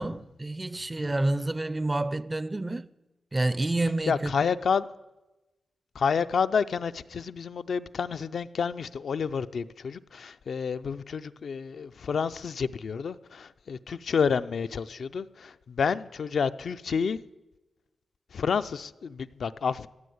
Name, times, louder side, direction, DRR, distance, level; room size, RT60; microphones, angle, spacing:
voice 1, 0.0-2.9 3.3-4.5, right 2 dB, 20° right, 0.4 m, -29 dB
voice 2, 4.1-4.9 6.0-17.2 18.3-19.9, left 6 dB, 65° left, 0.4 m, -29 dB
15.5 x 7.8 x 9.4 m
wide cardioid pair, 130°, 0 cm